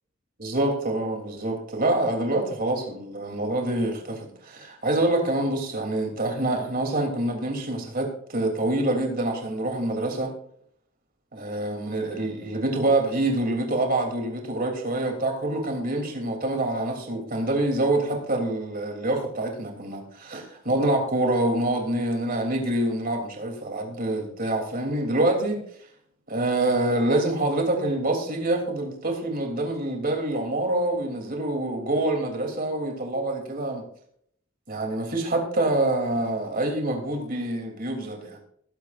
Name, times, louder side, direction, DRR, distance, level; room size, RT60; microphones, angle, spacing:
voice 1, 0.4-10.3 11.3-25.6 26.3-33.8 34.7-38.4, right 1 dB, 45° right, 3 dB, 3.1 m, -26 dB
20.5 x 10.0 x 2.5 m, 0.65 s
head